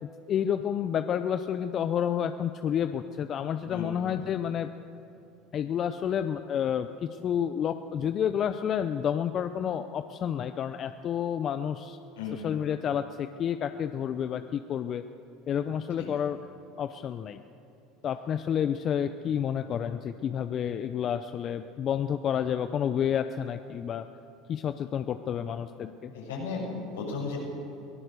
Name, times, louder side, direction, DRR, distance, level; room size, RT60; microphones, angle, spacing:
voice 1, 0.0-4.7 5.5-12.0 12.3-15.0 15.5-16.4 16.8-17.4 18.0-24.1 24.5-26.1, left 9 dB, 45° left, 10 dB, 0.7 m, -30 dB
voice 2, 3.7-4.1 12.2-12.5 16.0-16.1 26.1-27.4, left 4 dB, 80° left, -2 dB, 6.9 m, -35 dB
23.0 x 17.5 x 6.7 m, 2.8 s
hypercardioid pair, 75°, 0 cm